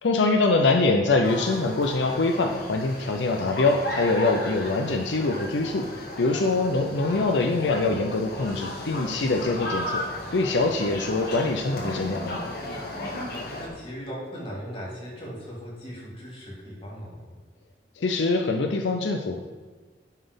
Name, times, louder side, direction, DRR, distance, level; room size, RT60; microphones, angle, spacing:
voice 1, 0.0-10.0 10.3-12.5 18.0-19.4, left 3 dB, 75° left, 4 dB, 0.6 m, -24 dB
sound 1, 1.2-13.7, left 1 dB, 60° left, 1.8 m, -35 dB
voice 2, 13.5-17.3, equal, 30° left, -4 dB, 2.8 m, -38 dB
11.5 x 4.1 x 5.2 m, 1.4 s
head